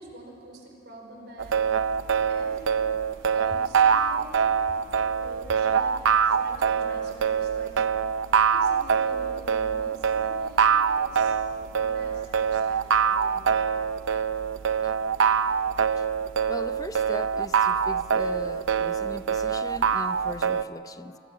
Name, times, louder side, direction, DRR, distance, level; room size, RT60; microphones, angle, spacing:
voice 1, 0.0-4.7 5.1-7.9 8.5-11.4 11.7-13.6, right 1 dB, 55° right, 2 dB, 4.5 m, -46 dB
sound 1, 1.4-20.6, right 7 dB, 80° right, 0.6 m, -24 dB
voice 2, 16.5-21.2, left 1 dB, 20° left, 12 dB, 0.6 m, -38 dB
28.5 x 23.0 x 6.2 m, 3.0 s
head